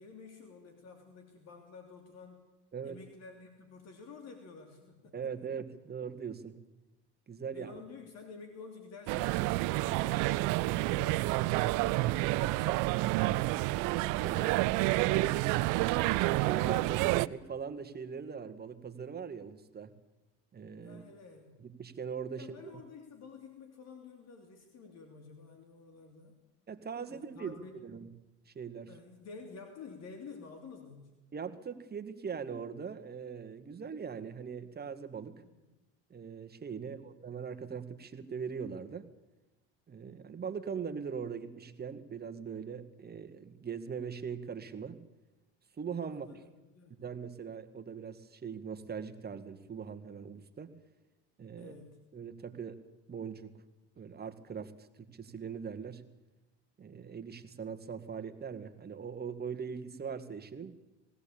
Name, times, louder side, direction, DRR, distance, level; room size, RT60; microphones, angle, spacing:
voice 1, 0.0-2.4 2.8-5.3 7.5-12.8 20.8-21.5 22.3-26.3 27.1-27.8 28.9-31.1 35.4-35.6 36.8-37.1 46.1-47.0 51.6-52.0, left 4 dB, 50° left, 4 dB, 3.2 m, -51 dB
voice 2, 5.1-6.6 7.3-7.7 9.8-9.9 14.0-15.5 16.3-19.9 20.5-21.0 21.6-22.6 26.7-27.6 27.8-28.1 28.5-28.9 31.3-35.4 36.1-39.1 39.9-45.0 45.8-46.4 47.0-50.7 51.4-51.7 52.1-52.8 53.1-53.6 54.0-56.0 56.8-60.8, right 6 dB, 30° right, 9 dB, 1.9 m, -41 dB
sound 1, 9.1-17.3, right 19 dB, 70° right, 0.7 m, -29 dB
20.0 x 17.0 x 8.8 m, 1.0 s
supercardioid pair, 85°, 33 cm